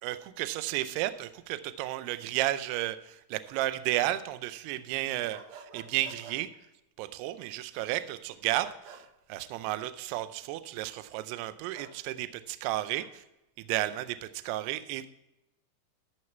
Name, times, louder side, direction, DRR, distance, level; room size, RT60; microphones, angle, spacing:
voice 1, 0.0-3.0 3.3-5.4 5.7-6.5 7.0-9.0 9.3-13.0 13.7-14.2 14.4-15.1, right 15 dB, 90° right, 12 dB, 2.3 m, -32 dB
sound 1, 5.3-6.4 8.6-9.0 11.7-11.9 12.7-13.1, right 6 dB, 70° right, 1.6 m, -48 dB
13.5 x 6.4 x 4.5 m, 0.90 s
omnidirectional pair, 5.4 m